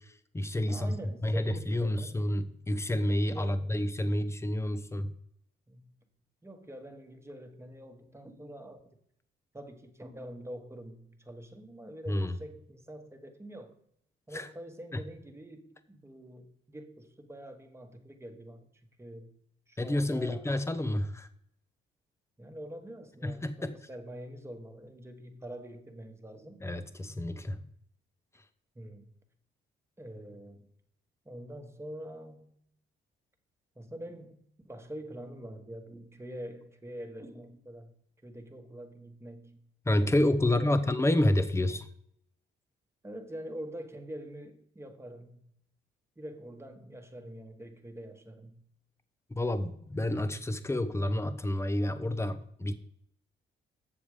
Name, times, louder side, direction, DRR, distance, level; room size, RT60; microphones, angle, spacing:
voice 1, 0.0-1.0 1.2-5.1 12.1-12.3 14.3-14.5 14.9-15.0 19.8-21.3 23.2-23.7 26.6-27.6 39.8-41.9 49.3-52.7, left 1 dB, 15° left, 10 dB, 0.8 m, -29 dB
voice 2, 0.7-2.2 3.2-3.7 5.7-5.9 6.4-9.0 9.5-13.8 14.3-18.7 19.0-19.4 19.7-20.5 22.4-26.7 28.7-29.1 30.0-30.7 31.2-32.6 33.7-39.7 40.4-41.0 43.0-45.5 46.2-48.7, right 1 dB, 15° right, 5 dB, 1.4 m, -45 dB
7.4 x 7.0 x 4.9 m, 0.71 s
cardioid pair, 90°, 20 cm